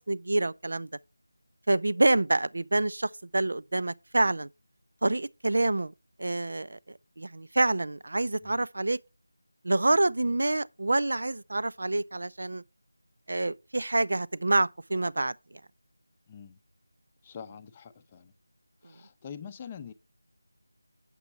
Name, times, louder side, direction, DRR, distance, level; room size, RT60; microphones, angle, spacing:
voice 1, 0.1-0.9 1.7-4.5 5.0-5.9 6.2-9.0 9.6-12.6 13.3-15.3, right 2 dB, 55° right, 0.4 m, -27 dB
voice 2, 16.3-16.6 17.2-18.3 18.8-19.9, left 7 dB, 20° left, 0.6 m, -44 dB
8.3 x 6.9 x 4.3 m
figure-of-eight pair, 165°, 0 cm